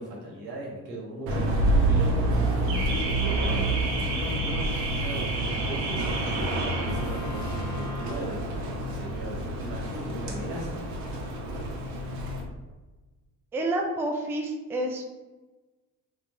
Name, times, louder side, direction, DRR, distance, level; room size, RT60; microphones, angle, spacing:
voice 1, 0.0-3.7 4.0-10.8, right 1 dB, 85° right, -4 dB, 1.1 m, -38 dB
Car / Alarm, 1.3-12.4, right 2 dB, 65° right, 0.8 m, -27 dB
Wind instrument woodwind instrument, 5.3-9.6, equal, 40° left, 0.7 m, -44 dB
voice 2, 13.5-15.0, right 1 dB, 5° right, 1 dB, 0.3 m, -29 dB
3.8 x 2.1 x 2.7 m, 1.2 s
hypercardioid pair, 50°, 48 cm